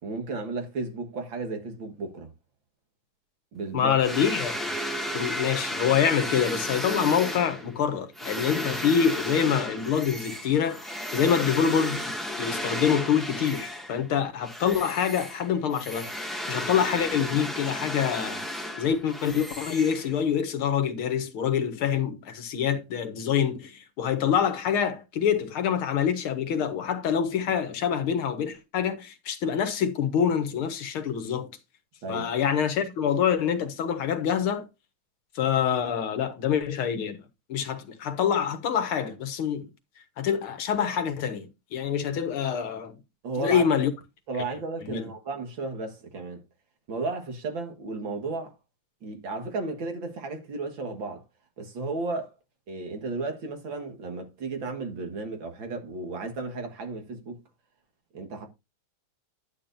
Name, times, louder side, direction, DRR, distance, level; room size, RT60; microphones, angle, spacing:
voice 1, 0.0-2.3 3.5-4.0 32.0-32.3 43.2-43.7 44.3-46.4 46.9-48.5 49.0-51.2 51.6-52.3 52.7-57.4 58.1-58.5, right 3 dB, 65° right, 2.5 m, -34 dB
voice 2, 3.7-4.6 5.1-10.8 11.1-12.1 12.4-16.1 16.5-18.4 18.8-31.5 32.1-34.7 35.4-37.2 37.5-39.7 40.2-42.9 43.4-43.9 44.8-45.1, left 8 dB, 85° left, 2.1 m, -26 dB
sound 1, 4.0-14.1 14.4-20.4, equal, ahead, 1.7 m, -34 dB
11.0 x 8.9 x 2.6 m
omnidirectional pair, 2.3 m